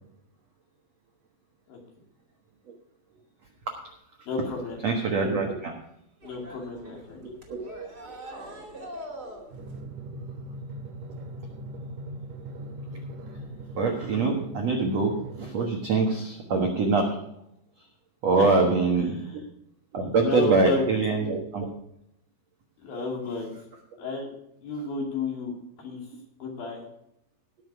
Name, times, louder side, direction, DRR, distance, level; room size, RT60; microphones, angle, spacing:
voice 1, 4.3-4.8 6.2-7.3 18.4-18.6 19.0-19.3 20.2-20.8 22.8-23.5 24.0-24.3 24.6-25.5 25.8-26.0 26.4-26.8, left 3 dB, 55° left, 0 dB, 4.0 m, -32 dB
voice 2, 4.8-5.7 7.2-7.6 8.0-8.1 13.8-17.1 18.2-19.2 19.9-21.7, right 3 dB, 85° right, 1 dB, 1.5 m, -24 dB
sound 1, 6.2-9.8, right 1 dB, 30° right, 2.1 m, -42 dB
Drum, 9.5-15.5, right 1 dB, 55° right, 2.6 m, -40 dB
18.5 x 6.5 x 4.9 m, 0.77 s
omnidirectional pair, 5.5 m